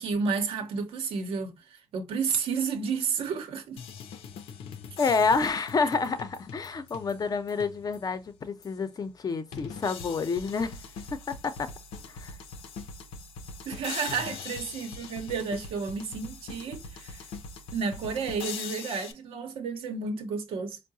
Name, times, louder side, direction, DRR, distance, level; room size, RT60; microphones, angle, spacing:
voice 1, 0.0-3.8 13.6-17.2 17.7-20.8, right 5 dB, 80° right, 0.9 m, -31 dB
sound 1, 3.8-8.2 8.6-8.7 9.5-19.1, left 5 dB, 90° left, 0.6 m, -42 dB
voice 2, 5.0-10.8 11.1-11.7 12.1-12.3, left 4 dB, 40° left, 0.7 m, -28 dB
4.6 x 2.2 x 2.6 m
cardioid pair, 80°, 9 cm